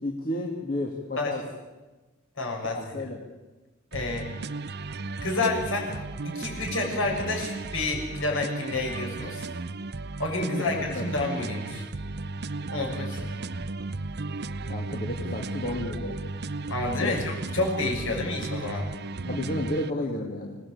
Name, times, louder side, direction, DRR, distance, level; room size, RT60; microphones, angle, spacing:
voice 1, 0.0-1.4 2.6-3.2 10.4-11.0 14.6-16.1 17.0-17.2 19.2-20.6, left 1 dB, 45° left, 0 dB, 2.7 m, -32 dB
voice 2, 2.4-3.0 3.9-4.3 5.2-9.4 10.2-11.9 12.7-13.3 16.7-18.9, left 2 dB, 65° left, 1 dB, 7.2 m, -29 dB
sound 1, 3.9-19.9, right 3 dB, 50° right, 0.8 m, -35 dB
27.5 x 18.5 x 8.8 m, 1.2 s
head